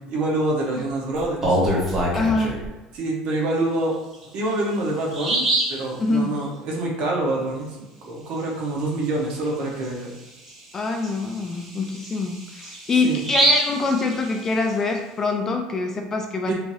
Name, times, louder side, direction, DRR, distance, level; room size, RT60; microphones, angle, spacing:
voice 1, 0.1-1.6 2.9-3.9 4.3-7.7 8.0-10.1 13.0-13.2 16.5-16.6, right 2 dB, 55° right, -1 dB, 0.9 m, -26 dB
Bird vocalization bird call bird song, 1.2-2.7 4.1-4.2 4.7-4.8 5.1-5.8 9.3-9.4 9.8-9.9 10.5-14.7, right 1 dB, 15° right, 0.9 m, -25 dB
voice 2, 2.1-2.6 6.0-6.3 10.7-16.5, left 3 dB, 20° left, 3 dB, 0.3 m, -24 dB
3.4 x 3.1 x 2.7 m, 1.1 s
cardioid pair, 165°, 2 cm